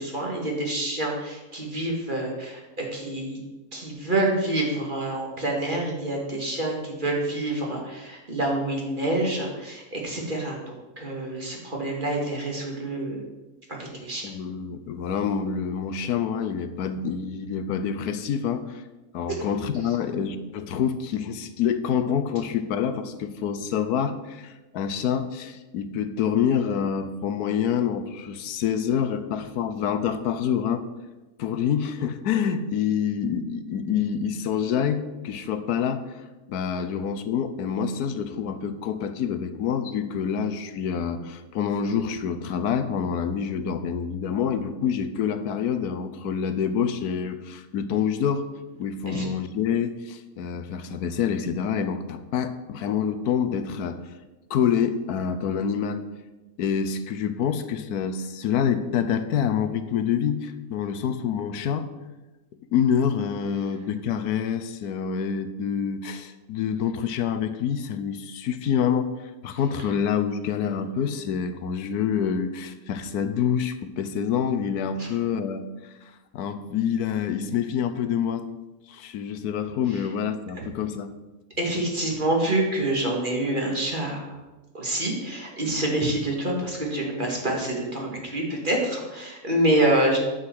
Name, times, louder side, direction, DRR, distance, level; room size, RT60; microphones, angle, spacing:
voice 1, 0.0-3.4 3.7-10.6 11.0-13.2 13.7-14.3 19.3-19.5 36.8-36.9 49.1-49.2 75.0-75.1 79.9-80.1 80.6-80.7 81.6-84.4 84.7-90.2, right 1 dB, 35° right, -1 dB, 2.1 m, -27 dB
voice 2, 14.2-18.8 19.1-30.8 31.4-36.1 36.5-48.5 48.8-54.0 54.5-56.0 56.6-61.9 62.7-69.1 69.4-75.9 76.3-78.5 78.9-81.1, left 7 dB, 85° left, 10 dB, 1.3 m, -27 dB
8.9 x 5.6 x 7.8 m, 1.1 s
omnidirectional pair, 1.6 m